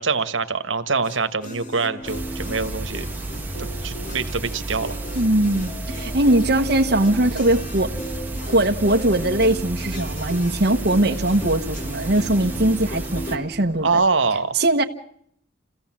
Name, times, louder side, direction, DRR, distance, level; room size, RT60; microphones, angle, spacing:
voice 1, 0.0-3.1 3.6-4.9 13.8-14.6, right 4 dB, 85° right, 9 dB, 1.6 m, -24 dB
sound 1, 1.0-13.5, equal, 40° left, 2.9 m, -37 dB
sound 2, 2.0-14.1, equal, 25° left, 4.5 m, -43 dB
sound 3, 2.1-13.4, right 2 dB, 10° right, 1.8 m, -32 dB
voice 2, 5.1-8.0 8.4-13.9 14.5-14.8, right 1 dB, 55° right, 3 dB, 1.3 m, -20 dB
28.0 x 16.5 x 7.6 m, 0.67 s
head